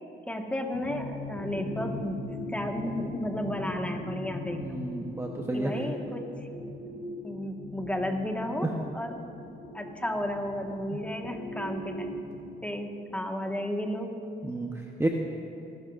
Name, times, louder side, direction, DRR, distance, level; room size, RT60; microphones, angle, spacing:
voice 1, 0.3-4.8 5.5-6.5 7.2-9.2 9.7-12.1 12.6-14.1, equal, 5° left, 2 dB, 1.5 m, -33 dB
sound 1, 0.7-12.5, left 2 dB, 65° left, 2.9 m, -40 dB
voice 2, 4.5-5.7 14.4-15.1, right 2 dB, 15° right, 1 dB, 0.9 m, -31 dB
23.5 x 12.0 x 2.6 m, 2.8 s
cardioid pair, 80°, 20 cm